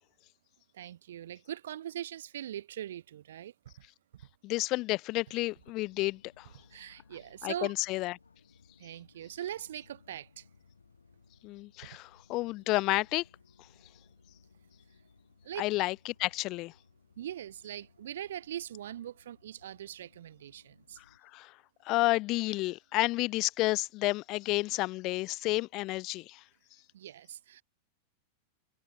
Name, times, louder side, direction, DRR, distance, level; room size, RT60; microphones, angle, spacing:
voice 1, 0.7-3.5 4.1-4.2 6.7-7.7 8.8-10.5 11.8-12.0 15.4-15.6 17.2-21.0 26.9-27.6, right 11 dB, 60° right, 1.8 m, -41 dB
voice 2, 4.4-6.5 7.4-8.2 11.4-13.2 15.6-15.9 16.2-16.7 21.3-21.5 21.9-26.4, left 20 dB, 40° left, 0.5 m, -30 dB
sound 1, 5.5-21.2, left 5 dB, 75° left, 4.0 m, -63 dB
figure-of-eight pair, 90°, 0 cm